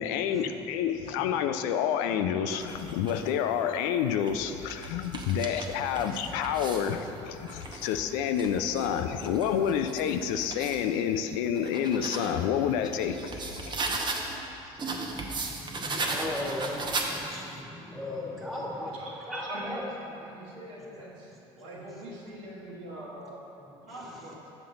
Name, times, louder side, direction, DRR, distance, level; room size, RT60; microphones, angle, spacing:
voice 1, 0.0-14.1 14.9-15.0, left 8 dB, 75° left, 8 dB, 0.4 m, -29 dB
sound 1, 2.5-3.3 4.0-6.9 7.4-10.8 11.3-14.4 14.8-17.5, right 3 dB, 30° right, 0.8 m, -37 dB
voice 2, 6.0-6.3 14.8-19.8 23.9-24.2, left 1 dB, ahead, -5 dB, 1.6 m, -38 dB
voice 3, 17.1-18.0 18.7-23.4 23.9-24.5, right 1 dB, 90° right, -6 dB, 1.6 m, -43 dB
7.2 x 5.5 x 3.8 m, 2.9 s
supercardioid pair, 80°, 14 cm